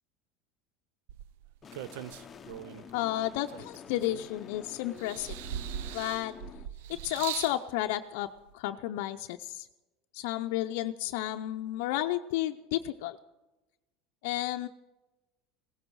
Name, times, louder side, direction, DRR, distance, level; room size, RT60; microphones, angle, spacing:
sound 1, 1.1-2.9 3.5-4.5 5.0-7.6 8.5-8.6, right 11 dB, 80° right, 0.5 m, -40 dB
sound 2, 1.6-6.7, left 7 dB, 25° left, 0.7 m, -48 dB
voice 1, 2.9-5.3 5.9-6.3 7.0-8.3 8.5-9.7 10.1-13.2 14.2-14.7, left 14 dB, 75° left, 6 dB, 0.5 m, -32 dB
16.5 x 14.5 x 4.7 m, 1.1 s
supercardioid pair, 130°, 0 cm